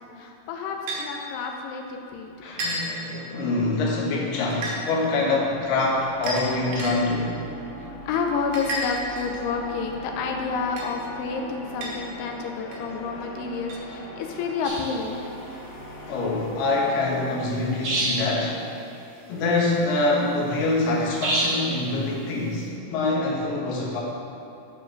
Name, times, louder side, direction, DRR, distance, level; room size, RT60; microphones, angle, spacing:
voice 1, 0.0-2.3 7.8-15.3, left 5 dB, 90° left, 2 dB, 2.8 m, -30 dB
sound 1, 0.9-1.0 2.6-2.9 4.5-4.8 6.2-6.9 8.5-9.4 10.8-10.9 11.8-11.9 12.7-12.8 13.7-13.8, equal, 60° right, 2.5 m, -30 dB
voice 2, 2.4-7.4 12.9-13.0 16.0-18.6 19.3-24.0, left 2 dB, 65° left, -3 dB, 2.9 m, -25 dB
sound 2, 4.6-17.7, equal, 40° left, 1.3 m, -41 dB
sound 3, 14.6-15.0 17.8-18.4 21.2-21.7, right 1 dB, 75° right, 1.0 m, -26 dB
11.5 x 4.6 x 6.5 m, 2.7 s
omnidirectional pair, 4.6 m